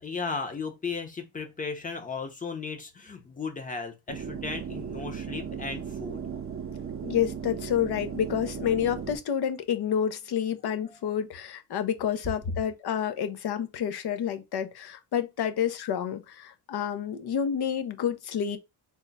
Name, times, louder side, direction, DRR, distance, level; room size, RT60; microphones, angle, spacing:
voice 1, 0.0-6.2, left 4 dB, 20° left, 0.6 m, -35 dB
sound 1, 4.1-9.2, right 7 dB, 35° right, 0.5 m, -36 dB
voice 2, 7.0-18.6, left 9 dB, 70° left, 0.6 m, -29 dB
3.5 x 2.1 x 3.9 m
wide cardioid pair, 165°, 41 cm